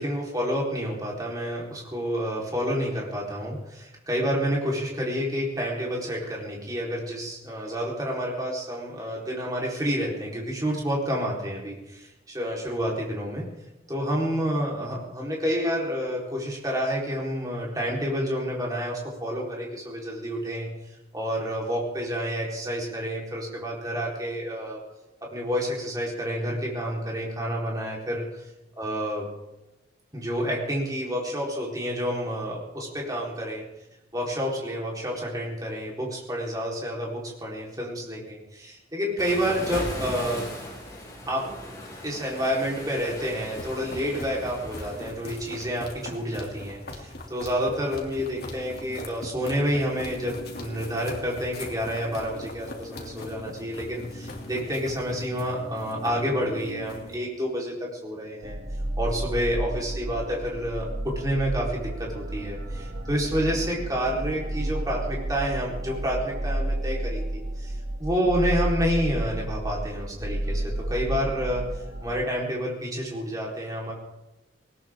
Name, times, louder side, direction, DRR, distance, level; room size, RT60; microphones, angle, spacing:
voice 1, 0.0-13.4 13.9-20.7 21.1-24.8 25.3-28.4 28.8-29.2 30.1-33.6 34.1-40.4 41.3-41.5 42.0-58.6 59.0-67.7 68.0-73.9, equal, 20° right, -3 dB, 4.3 m, -29 dB
Waves surf, 39.2-45.1, left 1 dB, 20° left, 5.7 m, -38 dB
sound 1, 43.5-57.2, left 1 dB, 55° left, 3.0 m, -40 dB
sound 2, 58.4-72.2, right 1 dB, 70° right, 1.7 m, -31 dB
19.5 x 19.0 x 3.8 m, 0.99 s
head